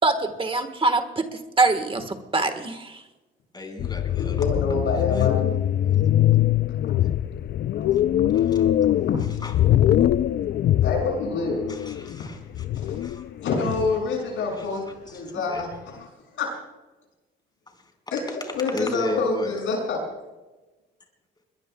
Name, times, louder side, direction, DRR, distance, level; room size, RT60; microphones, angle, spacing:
voice 1, 0.0-1.3 1.6-3.0, right 3 dB, 25° right, 8 dB, 1.4 m, -23 dB
voice 2, 3.5-4.7 5.1-5.3 8.3-8.7 9.4-9.5 11.7-13.2 14.6-14.7 15.3-15.6 18.7-19.6, left 2 dB, 20° left, 3 dB, 4.7 m, -33 dB
sound 1, 3.8-12.3 12.5-14.0, left 12 dB, 55° left, 0.4 m, -22 dB
voice 3, 4.4-5.5 6.8-6.9 7.7-7.8 8.2-8.3 8.8-8.9 9.1-9.2 10.8-11.7 12.7-12.9 13.4-15.7 16.4-16.5 18.1-18.3 18.5-20.0, left 4 dB, 80° left, -1 dB, 6.5 m, -27 dB
22.0 x 21.5 x 2.3 m, 1.1 s
cardioid pair, 90°, 20 cm